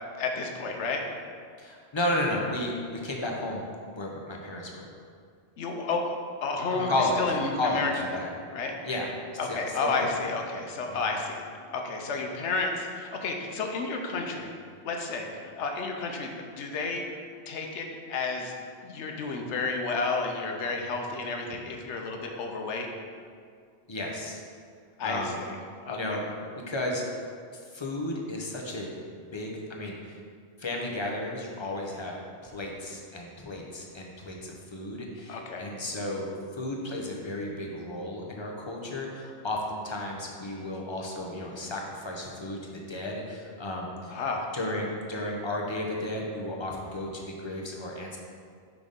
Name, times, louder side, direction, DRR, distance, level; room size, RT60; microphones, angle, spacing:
voice 1, 0.2-1.0 5.6-6.9 7.2-8.3 8.5-8.7 9.4-11.4 11.7-14.5 14.8-17.0 17.5-18.5 18.8-22.9 25.0-25.5 25.9-26.0 35.3-35.7 44.1-44.5, left 3 dB, 85° left, 2 dB, 1.0 m, -31 dB
voice 2, 1.6-3.6 3.9-4.9 6.7-8.3 8.8-9.1 9.4-10.1 10.9-11.1 23.9-24.4 25.0-25.4 25.9-26.2 26.7-27.2 27.7-28.9 29.2-30.1 30.6-32.2 32.4-36.3 36.6-44.1 44.5-48.2, left 1 dB, 30° left, -1 dB, 0.7 m, -33 dB
6.0 x 3.5 x 5.1 m, 2.1 s
omnidirectional pair, 1.2 m